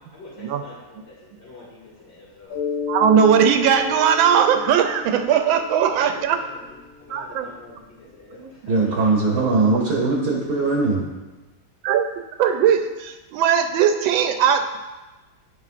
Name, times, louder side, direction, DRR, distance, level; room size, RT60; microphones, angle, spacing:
voice 1, 0.1-2.6 5.9-8.9, left 2 dB, 70° left, -9 dB, 2.5 m, -46 dB
Mallet percussion, 2.5-6.9, left 5 dB, 50° left, 1.8 m, -32 dB
voice 2, 2.9-6.4 7.1-7.5 11.8-12.1 12.4-14.8, right 8 dB, 80° right, 6 dB, 1.3 m, -19 dB
voice 3, 8.4-11.0, right 3 dB, 55° right, -3 dB, 1.5 m, -21 dB
10.5 x 4.3 x 2.5 m, 1.2 s
omnidirectional pair, 2.1 m